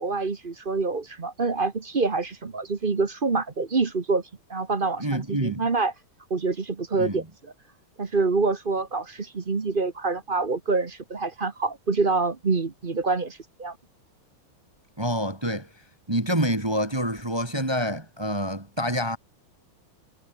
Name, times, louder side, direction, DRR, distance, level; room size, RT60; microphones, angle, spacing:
voice 1, 0.0-4.2 4.5-5.9 6.3-7.5 8.0-13.8, right 4 dB, 30° right, 1.1 m, -26 dB
voice 2, 5.0-5.7 6.9-7.2 15.0-15.7 16.1-19.2, equal, 15° right, 1.5 m, -27 dB
omnidirectional pair, 2.4 m